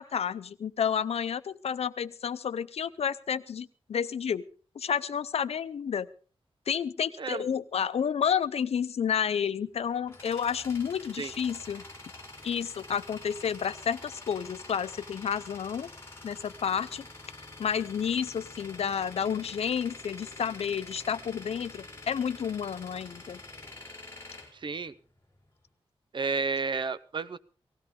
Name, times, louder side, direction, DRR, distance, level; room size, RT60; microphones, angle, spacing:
voice 1, 0.0-4.5 4.8-6.1 6.7-11.8 12.4-15.9 16.2-17.0 17.6-23.4, left 7 dB, 85° left, 15 dB, 0.6 m, -30 dB
Tools, 9.6-25.4, left 2 dB, 25° left, 4.7 m, -47 dB
voice 2, 24.5-24.9 26.1-27.4, right 4 dB, 50° right, 15 dB, 0.7 m, -31 dB
18.5 x 16.0 x 3.7 m, 0.39 s
wide cardioid pair, 105°, 10 cm